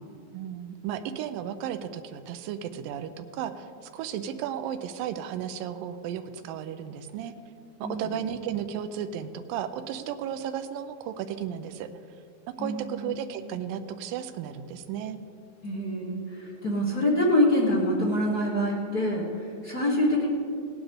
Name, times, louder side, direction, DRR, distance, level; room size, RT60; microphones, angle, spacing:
voice 1, 0.3-7.3 7.8-11.9 12.5-15.2, right 9 dB, 80° right, 9 dB, 2.2 m, -34 dB
voice 2, 12.6-13.1 15.6-20.3, left 1 dB, 60° left, -5 dB, 0.9 m, -25 dB
17.5 x 9.9 x 3.5 m, 2.6 s
omnidirectional pair, 4.3 m